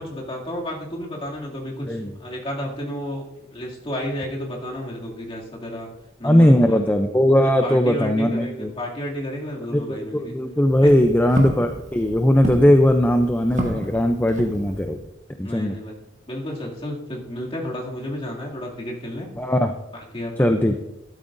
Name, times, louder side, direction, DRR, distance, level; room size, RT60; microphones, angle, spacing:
voice 1, 0.0-3.2 3.5-5.9 6.2-6.9 7.4-10.3 10.8-10.9 15.4-16.0 16.3-19.3 19.9-20.6, equal, 30° left, -3 dB, 2.5 m, -31 dB
voice 2, 6.2-8.7 9.7-15.0 15.4-15.8 19.4-19.7 20.4-20.8, equal, 10° left, 5 dB, 0.4 m, -19 dB
Walk footsteps, 10.5-15.1, right 1 dB, 35° right, 1.5 m, -32 dB
12.5 x 12.5 x 2.6 m, 0.90 s
head